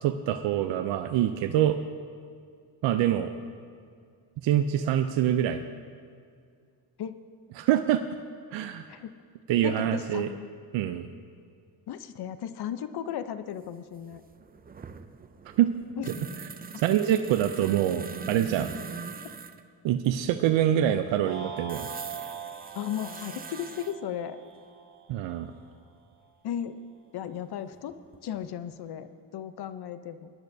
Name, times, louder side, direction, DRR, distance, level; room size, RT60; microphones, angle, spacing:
voice 1, 0.0-1.8 2.8-3.3 4.4-5.6 7.6-8.0 8.5-8.8 9.5-10.3 10.7-11.1 15.6-15.7 16.8-18.7 19.8-21.9 25.1-25.5, right 11 dB, 80° right, 8 dB, 0.6 m, -25 dB
voice 2, 9.6-10.5 11.9-14.2 16.0-16.1 22.7-24.4 26.4-26.8 27.1-29.1 29.3-30.3, left 10 dB, 60° left, 12 dB, 0.7 m, -35 dB
sound 1, 13.6-13.7 13.9-19.6 21.7-23.9 26.1-26.2 27.8-28.4 28.7-28.8, right 5 dB, 20° right, 0.4 m, -42 dB
sound 2, 21.2-25.6, right 6 dB, 40° right, 2.1 m, -42 dB
19.5 x 10.5 x 2.7 m, 2.2 s
cardioid pair, 100°, 44 cm